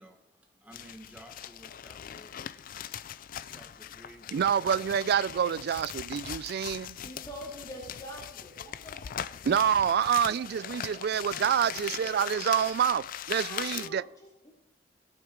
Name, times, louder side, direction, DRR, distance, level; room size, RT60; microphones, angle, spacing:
voice 1, 0.0-4.9 5.5-5.7, equal, 10° right, 1.6 m, -54 dB
sound 1, 0.7-13.9, left 10 dB, 50° left, 0.4 m, -40 dB
voice 2, 4.3-7.0 9.5-14.0, right 8 dB, 60° right, 0.3 m, -27 dB
voice 3, 7.0-9.3 9.5-12.2 13.3-14.5, equal, 20° left, 2.6 m, -47 dB
18.0 x 6.4 x 4.6 m
head